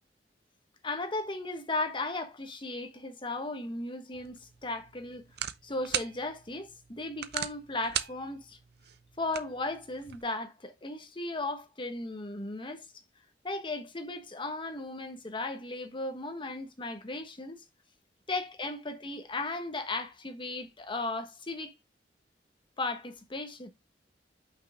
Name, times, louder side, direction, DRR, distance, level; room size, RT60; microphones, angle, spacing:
voice 1, 0.8-5.3 5.6-8.6 9.2-12.8 13.4-17.6 18.3-21.7 22.8-23.7, left 2 dB, 30° left, 1.2 m, -36 dB
sound 1, 4.1-10.2, right 10 dB, 65° right, 0.6 m, -40 dB
5.8 x 5.6 x 3.5 m
head